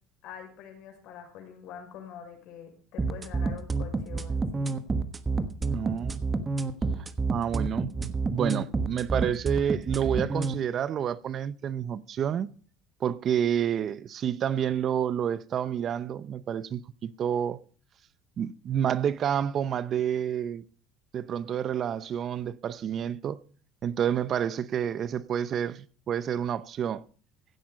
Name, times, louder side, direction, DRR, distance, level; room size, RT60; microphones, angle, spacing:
voice 1, 0.2-4.7, left 8 dB, 65° left, 5.8 m, -45 dB
sound 1, 3.0-10.5, right 3 dB, 20° right, 1.2 m, -28 dB
voice 2, 5.6-6.2 7.0-12.5 13.0-17.6 18.4-20.6 21.1-23.4 23.8-27.0, right 9 dB, 40° right, 0.7 m, -29 dB
16.0 x 8.6 x 5.1 m
cardioid pair, 125°, 0 cm